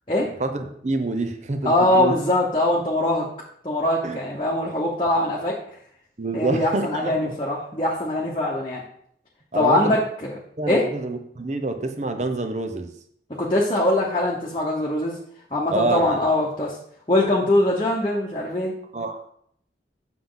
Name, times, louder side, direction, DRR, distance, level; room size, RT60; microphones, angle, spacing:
voice 1, 0.4-2.1 2.5-2.6 4.0-4.2 6.2-7.3 9.5-10.0 10.6-12.9 15.7-16.3 18.9-19.3, right 2 dB, 40° right, 7 dB, 0.8 m, -27 dB
voice 2, 1.6-3.3 3.6-5.6 6.3-8.8 9.5-10.4 10.7-10.9 13.4-15.2 15.5-16.8 17.1-18.7, left 1 dB, 30° left, -4 dB, 1.0 m, -22 dB
7.6 x 5.8 x 3.9 m, 0.67 s
head